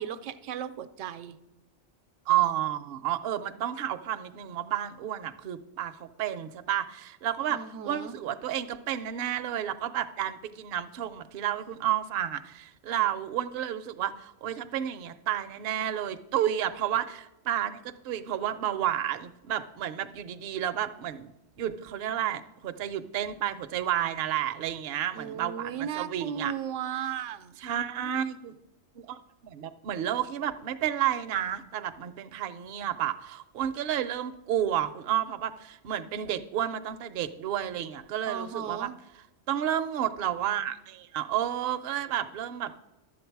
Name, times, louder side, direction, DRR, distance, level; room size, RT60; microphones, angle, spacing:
voice 1, 0.0-1.4 7.5-8.2 25.1-27.6 38.3-38.9, right 8 dB, 85° right, 12 dB, 0.9 m, -36 dB
voice 2, 2.3-7.6 7.9-21.3 21.6-26.5 27.6-28.5 29.0-29.2 29.4-38.9 39.5-42.7, right 11 dB, 60° right, 9 dB, 0.7 m, -31 dB
11.0 x 7.5 x 4.5 m, 0.97 s
omnidirectional pair, 1.2 m